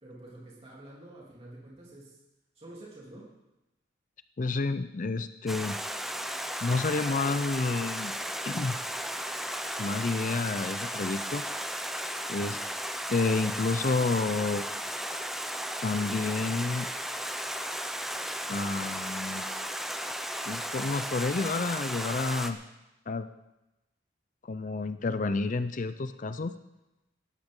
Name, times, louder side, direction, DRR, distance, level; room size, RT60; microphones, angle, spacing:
voice 1, 0.0-2.2 2.5-3.3, right 1 dB, 30° right, -5 dB, 3.3 m, -48 dB
voice 2, 4.4-5.8 6.6-8.1 8.5-8.8 9.8-11.4 12.3-12.6 13.1-14.7 15.8-16.9 18.5-19.5 20.5-22.6 23.1-23.3 24.4-26.5, left 3 dB, 40° left, 12 dB, 0.5 m, -29 dB
Stream, 5.5-22.5, equal, ahead, 0.7 m, -35 dB
18.0 x 13.0 x 3.8 m, 0.97 s
head